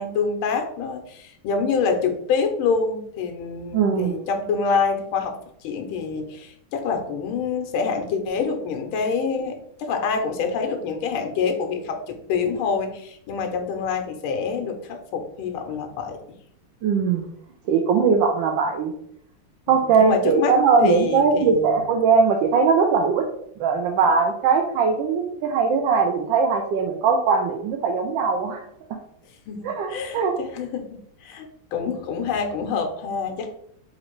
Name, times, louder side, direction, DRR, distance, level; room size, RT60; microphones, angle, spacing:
voice 1, 0.0-5.3 5.6-16.2 19.7-21.8 29.5-33.5, left 5 dB, 80° left, 4 dB, 1.6 m, -26 dB
voice 2, 3.7-4.2 16.8-17.2 17.7-18.9 19.7-23.2 23.6-28.6 29.6-30.3, right 5 dB, 75° right, 2 dB, 1.2 m, -20 dB
4.2 x 2.6 x 4.5 m, 0.69 s
omnidirectional pair, 2.3 m